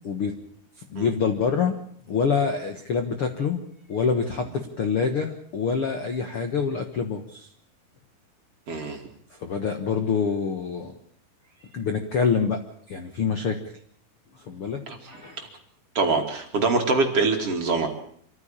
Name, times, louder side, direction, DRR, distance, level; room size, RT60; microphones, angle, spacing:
voice 1, 0.0-0.4 0.9-1.8 2.1-3.6 3.9-7.5 8.7-8.8 9.3-10.9 11.6-12.6 12.9-13.6 14.4-14.8 15.1-15.5, left 5 dB, 55° left, 6 dB, 1.6 m, -26 dB
voice 2, 8.7-9.0 14.9-15.5 15.9-17.9, right 3 dB, 40° right, 3 dB, 3.2 m, -24 dB
26.0 x 14.5 x 8.9 m, 0.63 s
omnidirectional pair, 4.3 m